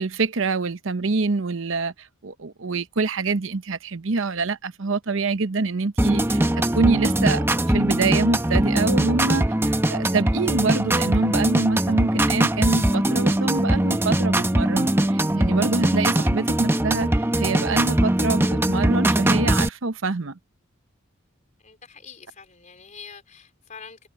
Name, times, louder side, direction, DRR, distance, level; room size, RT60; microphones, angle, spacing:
voice 1, 0.0-1.9 2.2-17.1 17.4-20.4, right 3 dB, 70° right, 0.8 m, -25 dB
sound 1, 6.0-19.7, right 1 dB, 10° right, 0.8 m, -21 dB
voice 2, 21.6-24.1, left 6 dB, 40° left, 4.1 m, -44 dB
head